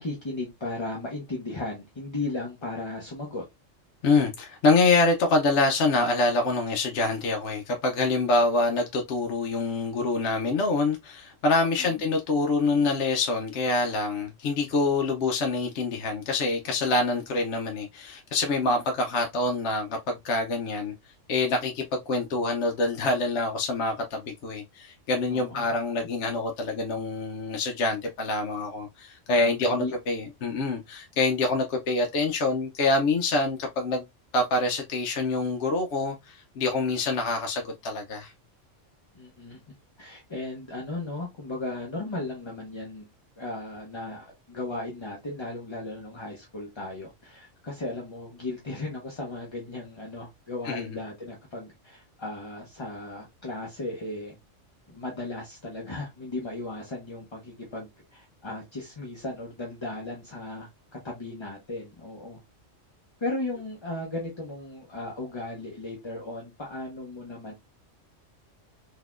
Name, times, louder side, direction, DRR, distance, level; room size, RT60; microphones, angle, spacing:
voice 1, 0.0-3.4 11.8-12.0 18.6-18.8 25.3-25.7 29.3-29.9 39.1-39.6 40.0-43.1 43.4-54.4 54.9-60.7 61.0-62.4 63.2-67.5, left 2 dB, 25° left, 0.7 m, -36 dB
voice 2, 4.0-20.9 21.3-34.0 34.3-38.3 50.6-51.0, left 3 dB, 65° left, 0.9 m, -26 dB
3.9 x 2.8 x 2.4 m
omnidirectional pair, 1.3 m